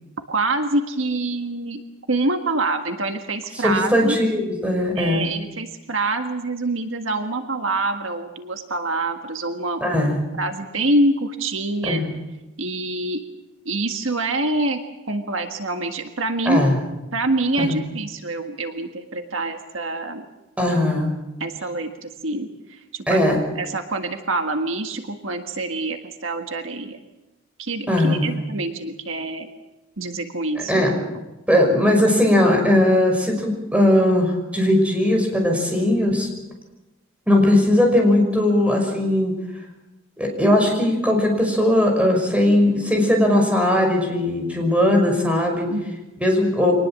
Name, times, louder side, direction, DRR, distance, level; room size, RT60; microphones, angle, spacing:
voice 1, 0.3-1.8 2.1-4.2 4.9-9.8 10.4-12.0 12.6-13.2 13.6-14.8 15.1-16.6 17.1-20.2 21.4-23.2 23.5-27.0 27.6-29.5 30.0-30.8 45.7-46.0, right 2 dB, 70° right, 6 dB, 1.7 m, -25 dB
voice 2, 3.6-5.3 9.8-10.2 11.9-12.1 16.5-16.8 17.6-17.8 20.6-21.1 23.1-23.4 27.9-28.3 30.7-30.9 31.5-36.3 37.3-39.4 40.2-45.7 46.2-46.7, left 1 dB, 5° right, 2 dB, 5.9 m, -19 dB
24.5 x 19.5 x 7.5 m, 1.0 s
head